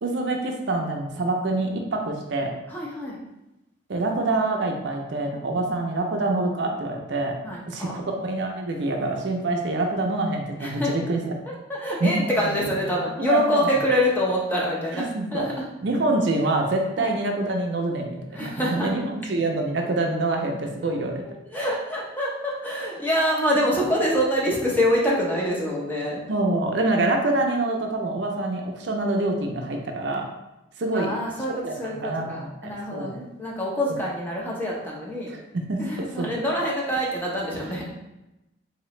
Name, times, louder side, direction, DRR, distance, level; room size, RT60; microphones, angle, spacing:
voice 1, 0.0-2.6 3.9-7.4 7.7-11.2 12.0-12.1 12.6-12.7 13.2-13.8 14.9-15.5 15.8-21.2 26.3-30.3 30.8-31.1 31.5-33.1 35.3-36.3, right 2 dB, 65° right, 2 dB, 0.5 m, -26 dB
voice 2, 2.7-3.2 5.6-5.8 7.4-7.9 10.6-10.9 11.5-15.0 15.3-15.6 17.0-17.1 18.3-18.9 20.8-26.2 30.9-31.5 31.8-35.3 35.8-37.8, equal, 10° left, -4 dB, 0.7 m, -26 dB
3.9 x 2.9 x 3.1 m, 0.95 s
head